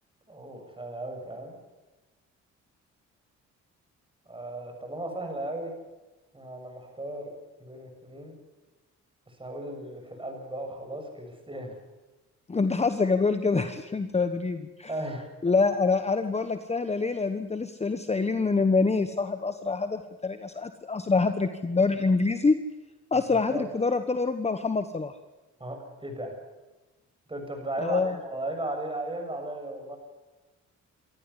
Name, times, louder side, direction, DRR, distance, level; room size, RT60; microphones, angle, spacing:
voice 1, 0.3-1.6 4.3-5.7 6.3-7.3 7.6-8.4 9.3-11.7 14.9-15.3 23.3-23.7 25.6-26.4 27.3-30.0, right 1 dB, 15° right, 4 dB, 7.3 m, -36 dB
voice 2, 12.5-14.9 15.4-22.6 23.1-25.1 27.8-28.2, left 4 dB, 20° left, 9 dB, 1.2 m, -26 dB
26.5 x 13.5 x 9.9 m, 1.1 s
cardioid pair, 90°, 30 cm